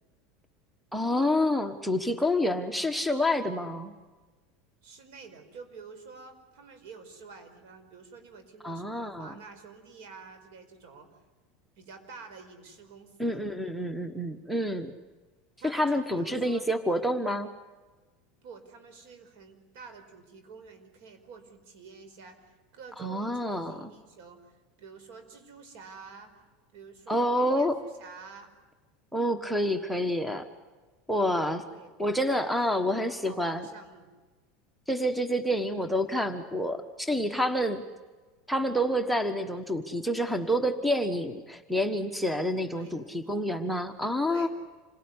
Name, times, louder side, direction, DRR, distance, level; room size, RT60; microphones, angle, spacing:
voice 1, 0.9-3.9 8.6-9.3 13.2-14.9 15.6-17.5 23.0-23.7 27.1-27.8 29.1-30.4 31.1-31.6 32.0-33.6 34.9-37.8 38.5-44.5, equal, ahead, 10 dB, 1.4 m, -28 dB
voice 2, 4.8-11.1 11.8-13.4 15.6-16.6 18.4-24.5 24.8-26.3 26.7-28.5 31.6-31.9 32.4-34.1 42.7-43.0 44.3-44.5, right 5 dB, 70° right, 8 dB, 5.1 m, -48 dB
27.5 x 18.0 x 9.8 m, 1.3 s
supercardioid pair, 135°, 0 cm